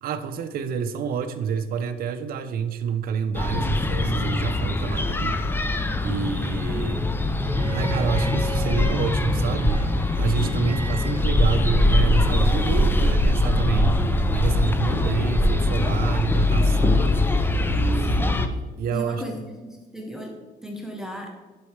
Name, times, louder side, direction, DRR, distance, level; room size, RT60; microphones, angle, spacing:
voice 1, 0.0-5.3 6.0-7.1 7.7-9.9 10.1-14.0 14.3-17.2 17.7-19.2, right 7 dB, 60° right, 9 dB, 0.6 m, -28 dB
sound 1, 3.3-18.5, left 2 dB, 10° left, 0.5 m, -22 dB
voice 2, 6.7-7.1 18.0-18.5 18.9-21.3, equal, 5° right, 1 dB, 0.9 m, -37 dB
Bowed string instrument, 7.5-12.5 14.0-14.1, right 6 dB, 25° right, 1.4 m, -39 dB
10.5 x 4.4 x 3.3 m, 1.3 s
cardioid pair, 110°, 17 cm